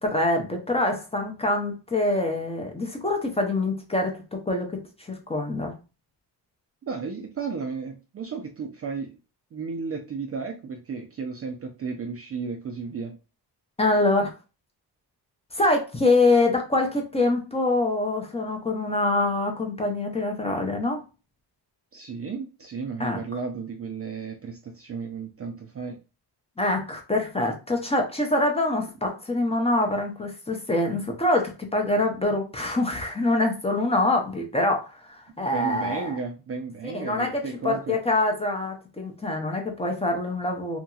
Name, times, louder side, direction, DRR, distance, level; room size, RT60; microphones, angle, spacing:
voice 1, 0.0-4.8 5.1-5.8 13.8-14.3 15.5-21.0 23.0-23.2 26.6-36.2 36.8-40.8, left 2 dB, 15° left, 2 dB, 0.6 m, -25 dB
voice 2, 6.9-9.1 9.5-13.2 21.9-26.0 35.5-38.0, right 5 dB, 35° right, 3 dB, 0.4 m, -33 dB
2.8 x 2.7 x 2.3 m, 0.31 s
cardioid pair, 110°, 42 cm